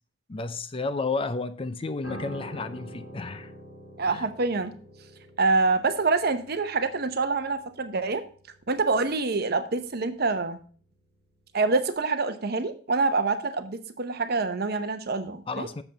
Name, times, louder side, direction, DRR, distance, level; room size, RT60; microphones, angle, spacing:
voice 1, 0.3-3.5 4.1-4.3 15.5-15.8, left 3 dB, 30° left, 0.5 m, -32 dB
Piano, 2.0-11.4 11.7-11.9, equal, 70° left, 4.6 m, -47 dB
voice 2, 4.0-4.7 5.4-8.2 8.7-10.6 11.5-15.7, right 3 dB, 55° right, 0.8 m, -26 dB
8.1 x 7.0 x 3.9 m
head